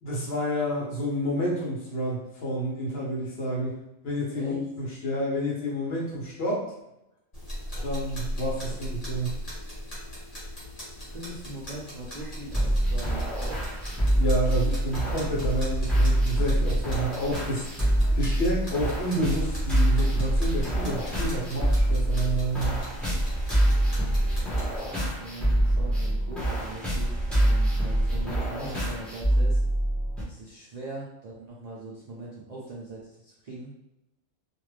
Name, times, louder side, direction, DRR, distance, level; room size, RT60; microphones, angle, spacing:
voice 1, 0.0-6.6 7.8-9.4 14.2-17.7 18.1-22.9, equal, 55° left, -4 dB, 1.0 m, -29 dB
voice 2, 4.3-4.7 8.7-8.8 11.0-13.8 24.4-29.6 30.2-33.7, right 2 dB, 70° right, -5 dB, 0.3 m, -41 dB
sound 1, 7.3-24.8, equal, 30° left, 1.2 m, -38 dB
Dirty grinding beat loop, 12.5-30.2, right 1 dB, ahead, 0.4 m, -25 dB
2.5 x 2.3 x 3.2 m, 0.89 s
omnidirectional pair, 1.4 m